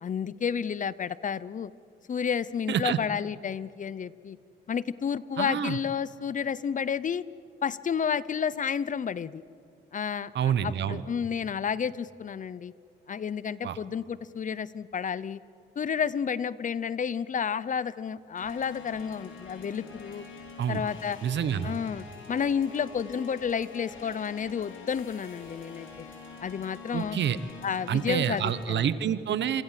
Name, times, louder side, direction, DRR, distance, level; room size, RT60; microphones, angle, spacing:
voice 1, 0.0-1.7 2.1-4.4 4.7-7.2 7.6-9.4 9.9-12.7 13.1-15.4 15.8-20.2 20.7-21.2 21.6-25.9 26.4-27.2 27.6-28.9, left 7 dB, 40° left, 19 dB, 0.7 m, -31 dB
voice 2, 2.7-3.0 5.4-5.8 10.3-11.0 13.6-13.8 20.6-20.8 21.2-21.8 26.9-27.4 27.9-29.6, right 9 dB, 65° right, 14 dB, 1.2 m, -27 dB
sound 1, 18.4-28.7, left 4 dB, 75° left, 5.2 m, -46 dB
27.5 x 23.5 x 7.6 m, 2.6 s
cardioid pair, 90°, 20 cm